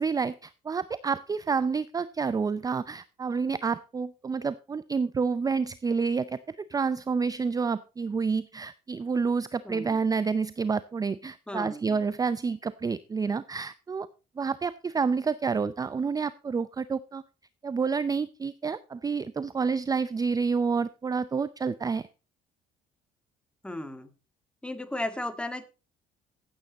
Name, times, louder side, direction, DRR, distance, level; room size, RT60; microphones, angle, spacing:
voice 1, 0.0-14.1 14.4-17.2 17.6-22.1, right 5 dB, 20° right, 16 dB, 0.5 m, -29 dB
voice 2, 9.6-10.0 11.5-12.0 23.6-24.1 24.6-25.7, left 1 dB, 5° left, 9 dB, 1.8 m, -35 dB
15.0 x 8.9 x 4.1 m, 0.32 s
cardioid pair, 110°, 17 cm